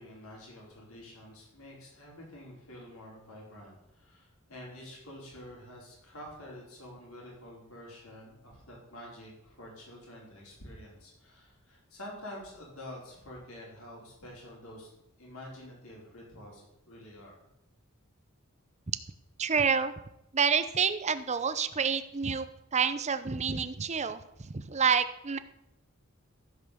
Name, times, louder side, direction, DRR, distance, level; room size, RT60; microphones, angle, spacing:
voice 1, 0.0-14.9 15.2-17.4, left 1 dB, 85° left, -3 dB, 4.7 m, -48 dB
voice 2, 19.4-19.9 20.3-22.5 22.7-25.4, right 6 dB, 30° right, 12 dB, 0.7 m, -28 dB
14.5 x 5.5 x 6.8 m, 0.84 s
head